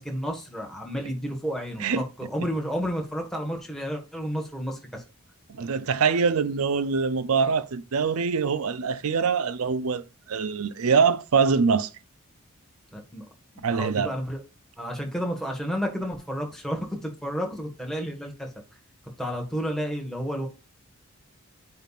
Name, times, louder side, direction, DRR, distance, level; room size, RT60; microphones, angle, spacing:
voice 1, 0.0-5.0 12.9-13.2 13.5-14.4 14.8-18.5 19.2-20.5, equal, ahead, 1.5 m, -31 dB
voice 2, 5.5-10.0 10.3-11.9 13.6-14.1, right 5 dB, 75° right, 0.5 m, -24 dB
9.0 x 5.6 x 2.4 m
head